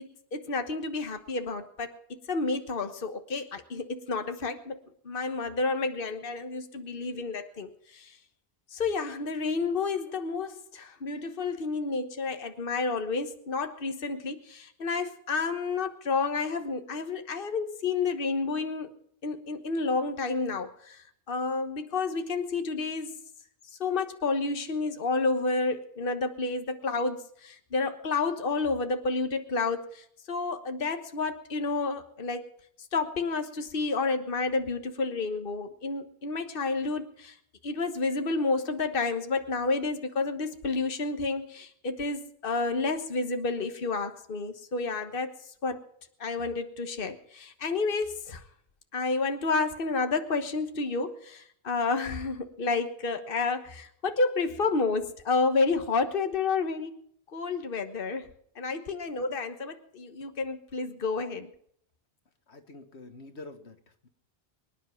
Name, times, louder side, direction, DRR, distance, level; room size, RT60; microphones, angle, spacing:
voice 1, 0.0-4.8 5.0-8.2 8.7-18.9 19.2-23.2 23.7-32.4 32.9-37.4 37.6-45.4 45.6-45.8 46.2-48.4 48.9-56.9 57.3-58.3 58.5-61.5, left 3 dB, 55° left, 7 dB, 1.5 m, -30 dB
voice 2, 62.5-64.1, left 2 dB, 85° left, 8 dB, 1.8 m, -47 dB
25.0 x 10.0 x 4.5 m, 0.67 s
omnidirectional pair, 1.1 m